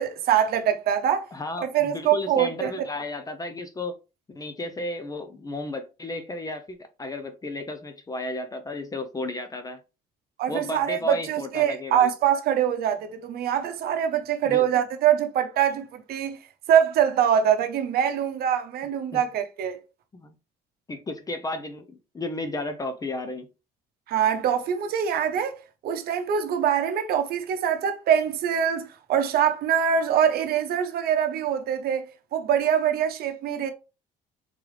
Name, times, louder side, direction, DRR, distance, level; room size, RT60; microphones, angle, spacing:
voice 1, 0.0-1.3 1.7-2.7 10.4-16.4 16.7-19.8 24.1-25.6 25.8-33.7, right 9 dB, 65° right, 0.8 m, -24 dB
voice 2, 1.3-4.0 4.3-9.8 10.5-12.1 14.5-14.7 19.1-19.2 20.1-20.3 20.9-21.9 22.1-23.5, left 2 dB, 20° left, 0.5 m, -33 dB
3.8 x 3.2 x 3.1 m
cardioid pair, 110°, 17 cm